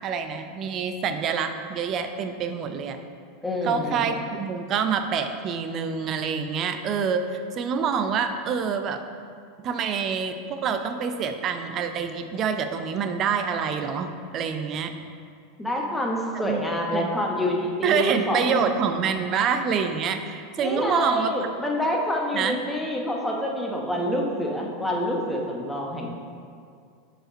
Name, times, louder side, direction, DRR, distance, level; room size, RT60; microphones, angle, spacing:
voice 1, 0.0-3.0 3.6-9.0 9.6-14.9 16.4-16.7 16.9-17.1 17.8-21.3 22.3-22.6, right 6 dB, 40° right, 7 dB, 0.5 m, -26 dB
voice 2, 3.4-4.1 15.6-18.6 20.6-26.1, left 1 dB, 5° left, -1 dB, 1.1 m, -27 dB
5.0 x 5.0 x 5.3 m, 2.2 s
hypercardioid pair, 90°, 0 cm